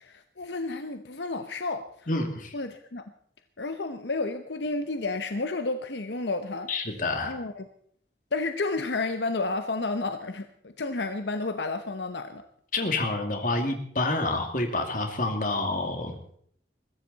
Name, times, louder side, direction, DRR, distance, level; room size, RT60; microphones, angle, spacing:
voice 1, 0.1-1.8 2.5-3.0 3.6-6.7 7.2-7.6 8.3-12.4, left 3 dB, 75° left, 8 dB, 0.9 m, -31 dB
voice 2, 2.1-2.5 6.7-7.3 12.7-16.2, left 2 dB, 45° left, 5 dB, 2.3 m, -28 dB
21.5 x 14.5 x 4.1 m, 0.64 s
head